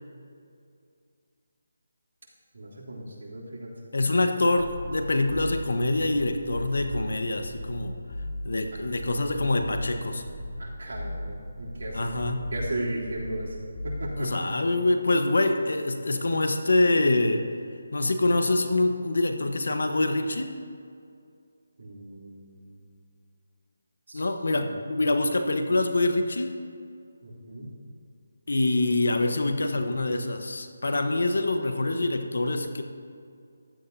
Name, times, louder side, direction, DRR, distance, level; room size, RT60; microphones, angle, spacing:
voice 1, 2.5-3.7 10.6-12.0 12.5-13.5 13.8-14.3 21.8-22.7 24.1-24.2 24.5-24.7 27.2-27.7, right 1 dB, 70° right, -5 dB, 3.2 m, -36 dB
voice 2, 3.9-8.0 8.4-10.2 11.9-12.5 14.2-17.4 17.9-20.6 24.1-26.6 28.5-32.8, left 2 dB, 75° left, 6 dB, 1.1 m, -25 dB
sound 1, 4.6-14.3, left 1 dB, 30° left, 2.4 m, -37 dB
15.0 x 11.5 x 2.8 m, 2.3 s
figure-of-eight pair, 165°, 0 cm